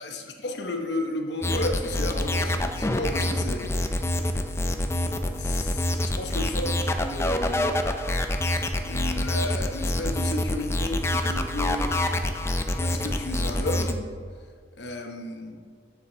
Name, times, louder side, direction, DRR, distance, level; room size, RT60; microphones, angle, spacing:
voice 1, 0.0-3.9 5.3-7.8 8.8-11.9 12.8-14.0 14.8-15.6, left 1 dB, 80° left, 3 dB, 1.0 m, -33 dB
sound 1, 1.4-13.9, left 1 dB, 15° left, 0.4 m, -26 dB
7.1 x 7.1 x 3.9 m, 2.1 s
head